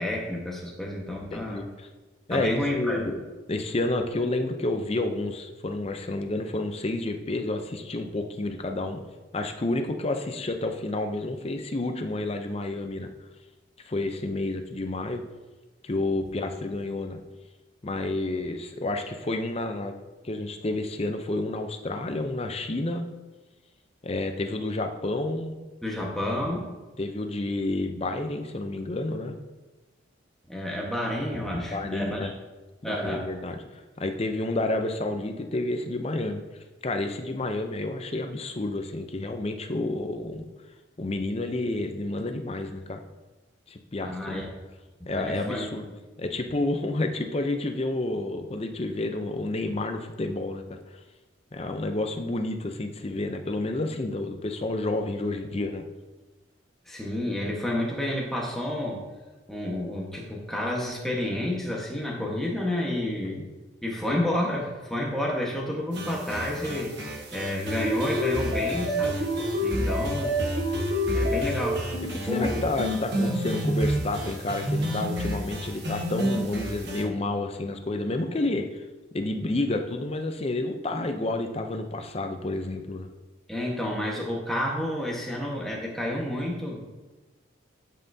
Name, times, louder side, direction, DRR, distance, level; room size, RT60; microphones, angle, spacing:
voice 1, 0.0-1.6 2.3-3.0 25.8-26.7 30.5-32.3 32.8-33.3 44.0-44.5 45.0-45.8 56.9-59.0 59.5-63.4 63.8-66.9 67.3-69.3 69.6-70.3 71.1-71.8 72.3-72.6 83.5-86.9, left 1 dB, ahead, -3 dB, 1.3 m, -30 dB
voice 2, 1.3-1.9 2.3-3.2 3.5-9.0 9.3-13.1 13.8-15.2 15.8-17.2 17.8-20.0 20.2-23.0 24.0-25.5 27.0-29.3 31.7-32.3 32.8-33.6 34.0-36.4 36.8-40.5 41.0-43.0 43.7-44.4 45.1-45.8 46.2-50.8 51.5-55.8 63.1-63.4 69.7-70.1 72.0-78.8 79.1-83.1, left 2 dB, 30° left, 6 dB, 0.5 m, -30 dB
sound 1, 65.9-77.0, equal, 55° right, 1.2 m, -28 dB
11.0 x 5.6 x 2.7 m, 1.2 s
head